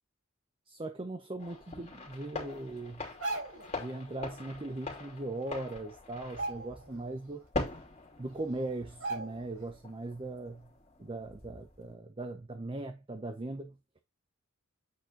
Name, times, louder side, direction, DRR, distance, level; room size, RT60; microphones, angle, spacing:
voice 1, 0.7-3.1 3.7-7.4 8.2-10.7 11.0-13.8, right 2 dB, 25° right, 0.7 m, -39 dB
sound 1, 1.4-11.9, left 3 dB, 30° left, 2.9 m, -43 dB
sound 2, 3.0-3.8 5.2-5.3 5.6-5.9 6.2-7.1 7.5-7.6 8.3-8.4 9.0-9.6 10.0-10.2, right 2 dB, 90° right, 4.7 m, -38 dB
8.5 x 4.3 x 3.8 m
head